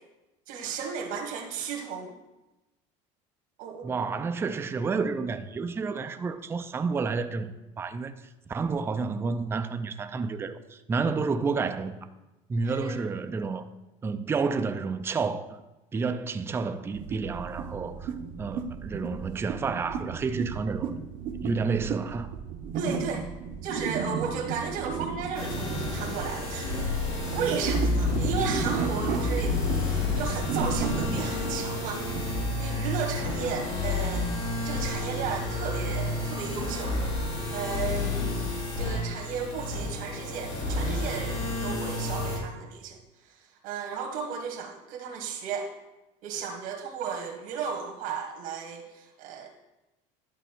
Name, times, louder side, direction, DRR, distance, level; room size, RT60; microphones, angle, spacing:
voice 1, 0.5-2.1 3.6-3.9 12.6-13.0 22.7-23.3 23.6-27.0 27.3-29.6 30.2-32.0 32.6-34.3 34.6-37.0 37.5-38.5 38.8-43.0 43.2-43.3 43.6-45.7 46.2-49.5, right 6 dB, 75° right, 1.3 m, -34 dB
voice 2, 3.8-8.1 8.5-12.0 12.5-13.7 14.0-15.6 15.9-20.9 21.4-22.3, right 4 dB, 15° right, 0.4 m, -30 dB
sound 1, 16.9-32.5, right 6 dB, 55° right, 0.8 m, -34 dB
sound 2, 25.3-42.4, left 2 dB, 85° left, 2.9 m, -30 dB
11.0 x 4.2 x 4.4 m
supercardioid pair, 125°, 16 cm